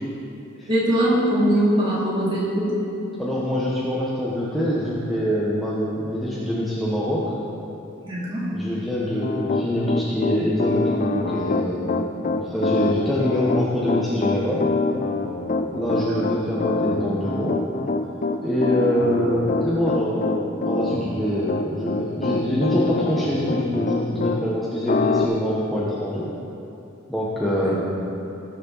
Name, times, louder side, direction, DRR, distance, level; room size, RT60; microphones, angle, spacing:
voice 1, 0.7-2.7 8.0-8.4 16.1-16.3 27.6-27.7, right 1 dB, 25° right, -7 dB, 2.8 m, -21 dB
voice 2, 3.2-7.2 8.5-11.9 12.2-14.7 15.7-17.6 18.4-26.3 27.1-27.8, equal, ahead, -8 dB, 1.1 m, -25 dB
Piano, 9.2-24.4 24.9-25.3, left 3 dB, 35° left, 0.5 m, -25 dB
19.5 x 6.6 x 4.0 m, 2.9 s
head